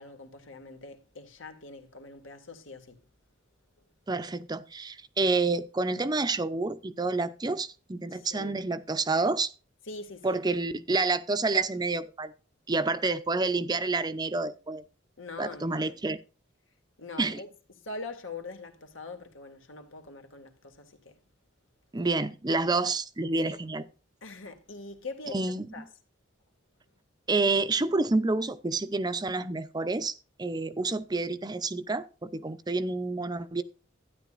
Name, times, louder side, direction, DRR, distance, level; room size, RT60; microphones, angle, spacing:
voice 1, 0.0-3.0 8.1-8.6 9.9-10.4 15.2-16.0 17.0-17.5 17.8-21.2 22.6-22.7 23.4-23.6 24.2-25.9, left 3 dB, 80° left, 2.1 m, -43 dB
voice 2, 4.1-9.5 10.2-12.3 12.7-14.8 15.4-16.2 17.2-17.4 21.9-23.8 25.3-25.7 27.3-33.6, right 3 dB, 20° right, 0.5 m, -28 dB
12.0 x 10.0 x 2.5 m
head